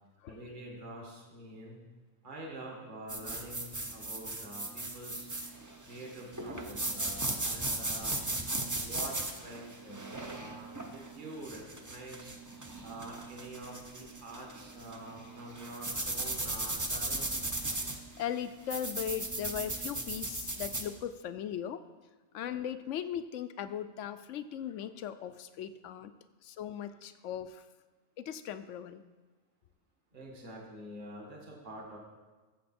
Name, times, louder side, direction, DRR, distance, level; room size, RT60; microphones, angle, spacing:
voice 1, 0.3-1.8 2.2-5.3 5.8-8.2 8.8-12.3 12.8-17.3 30.1-32.0, right 1 dB, 40° right, -2 dB, 1.8 m, -46 dB
sound 1, 3.1-20.9, right 2 dB, 15° right, 0.7 m, -37 dB
voice 2, 18.2-21.8 22.3-26.1 26.4-27.6 28.2-29.0, left 9 dB, 70° left, 12 dB, 0.9 m, -38 dB
14.5 x 7.6 x 4.3 m, 1.3 s
omnidirectional pair, 1.4 m